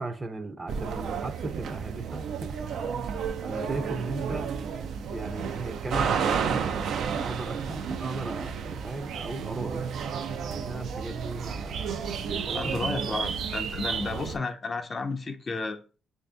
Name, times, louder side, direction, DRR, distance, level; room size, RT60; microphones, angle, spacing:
voice 1, 0.0-2.6 3.4-4.7 5.1-9.8 10.5-13.1 13.9-14.4, right 2 dB, 25° right, 0.5 m, -37 dB
sound 1, 0.7-14.4, right 6 dB, 70° right, 0.4 m, -32 dB
voice 2, 12.5-15.8, left 3 dB, 35° left, 0.5 m, -32 dB
3.4 x 2.7 x 3.3 m
cardioid pair, 90°, 0 cm